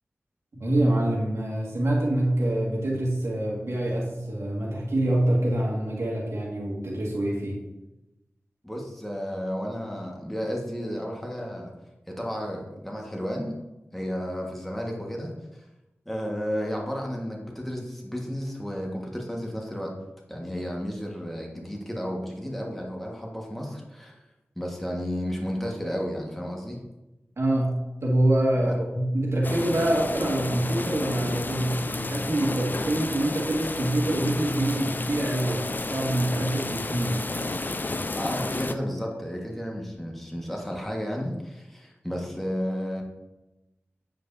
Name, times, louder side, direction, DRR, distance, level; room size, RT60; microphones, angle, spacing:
voice 1, 0.6-7.6 27.4-37.3, right 1 dB, 70° right, -3 dB, 1.9 m, -25 dB
voice 2, 8.6-11.7 12.1-13.6 13.9-15.6 16.0-19.9 20.3-24.2 24.5-26.8 28.6-28.8 38.1-43.0, equal, 5° left, -1 dB, 1.5 m, -32 dB
sound 1, 29.4-38.8, left 2 dB, 40° left, 0.4 m, -32 dB
9.0 x 5.1 x 2.7 m, 0.98 s
cardioid pair, 45°, 5 cm